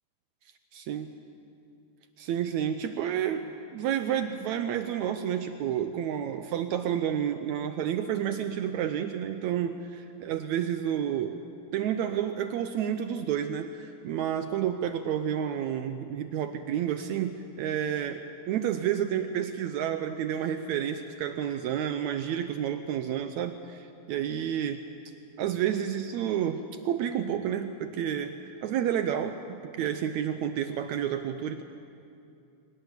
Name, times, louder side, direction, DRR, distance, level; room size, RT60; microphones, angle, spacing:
voice 1, 0.7-1.1 2.2-11.4 11.7-24.8 25.4-31.6, right 9 dB, 75° right, 9 dB, 1.8 m, -30 dB
23.5 x 19.5 x 7.2 m, 2.6 s
omnidirectional pair, 3.8 m